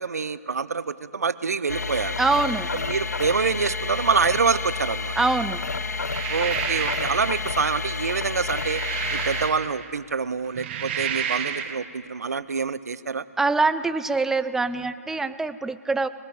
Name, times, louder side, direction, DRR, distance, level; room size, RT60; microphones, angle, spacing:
voice 1, 0.0-2.2 2.9-5.1 6.3-8.8 9.1-13.2, right 5 dB, 75° right, 17 dB, 0.7 m, -26 dB
sound 1, 1.7-9.5, left 4 dB, 85° left, 0.6 m, -30 dB
voice 2, 2.2-2.7 5.2-5.6 13.4-16.1, right 3 dB, 5° right, 13 dB, 0.5 m, -24 dB
sound 2, 5.9-7.4 8.2-9.9 10.4-11.8, right 8 dB, 40° right, 1.4 m, -30 dB
22.0 x 18.0 x 7.2 m, 2.3 s
figure-of-eight pair, 130°, 9 cm